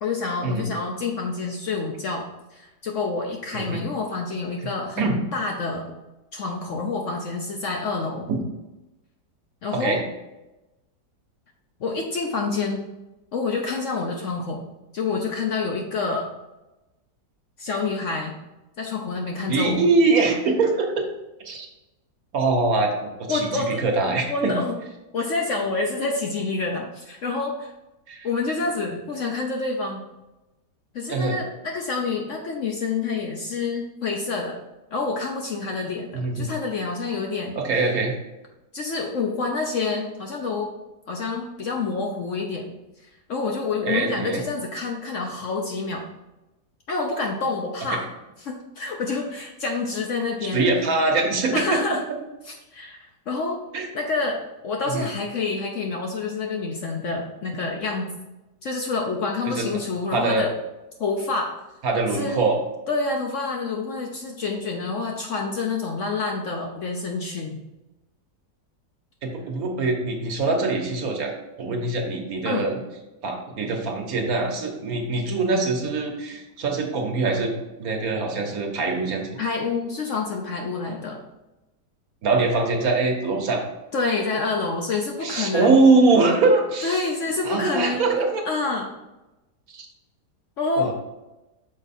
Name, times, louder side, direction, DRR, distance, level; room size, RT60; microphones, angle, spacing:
voice 1, 0.0-2.3 2.5-5.9 6.3-8.3 9.6-10.0 11.8-12.8 13.3-14.6 14.9-16.3 17.6-18.4 18.8-19.8 23.3-24.8 25.1-27.7 28.2-30.0 30.9-34.6 34.9-37.6 38.7-40.7 41.1-42.7 43.3-46.0 46.9-48.1 48.4-50.7 51.5-52.0 52.5-53.6 53.9-58.1 58.6-60.5 61.0-61.6 62.1-62.5 62.9-67.6 72.4-72.7 79.4-81.2 83.9-85.8 86.8-88.1 88.5-88.9 90.6-90.9, left 3 dB, 60° left, 1 dB, 0.8 m, -27 dB
voice 2, 9.7-10.0 19.5-21.1 21.4-21.7 22.3-24.6 28.1-28.3 31.1-31.4 36.1-36.5 37.6-38.1 43.9-44.4 47.9-48.0 50.5-51.8 53.7-53.9 54.9-55.1 59.5-59.6 60.1-60.5 61.8-62.6 69.2-72.8 73.2-77.5 77.8-79.2 82.2-83.6 85.2-87.0 87.4-88.4 89.7-89.9 90.8-90.9, right 3 dB, 60° right, 2 dB, 1.3 m, -23 dB
6.3 x 4.5 x 4.2 m, 1.0 s
omnidirectional pair, 1.8 m